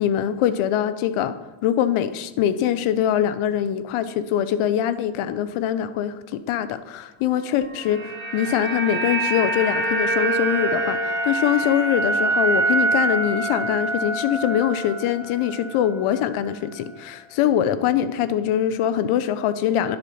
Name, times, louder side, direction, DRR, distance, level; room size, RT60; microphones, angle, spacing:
voice 1, 0.0-1.3 1.6-20.0, left 10 dB, 80° left, 13 dB, 0.9 m, -23 dB
sound 1, 7.6-15.9 16.1-16.3, right 2 dB, 10° left, 3.0 m, -25 dB
10.5 x 8.1 x 5.7 m, 1.1 s
cardioid pair, 85°, 49 cm